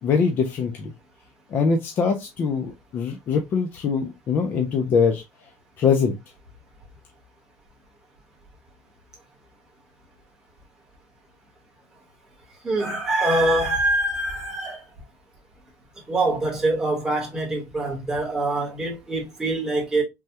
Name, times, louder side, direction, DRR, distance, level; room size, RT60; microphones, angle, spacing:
voice 1, 0.0-0.9 1.5-5.2 5.8-6.2, left 5 dB, 25° left, 0.4 m, -23 dB
voice 2, 12.6-14.8 16.1-20.0, right 2 dB, 10° right, 0.9 m, -24 dB
3.3 x 2.1 x 2.7 m
cardioid pair, 175°, 7 cm